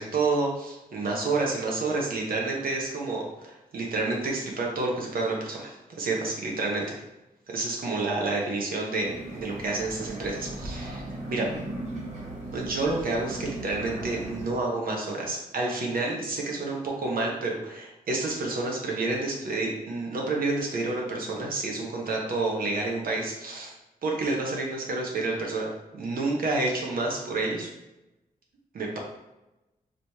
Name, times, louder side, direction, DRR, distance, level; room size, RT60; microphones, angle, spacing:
voice 1, 0.0-7.0 7.5-11.5 12.5-23.7 24.0-25.7 25.9-27.7 28.7-29.0, right 3 dB, 75° right, -1 dB, 1.0 m, -29 dB
sound 1, 9.0-14.5, right 2 dB, 50° right, 1.5 m, -37 dB
4.9 x 3.1 x 3.5 m, 0.99 s
wide cardioid pair, 110°, 15 cm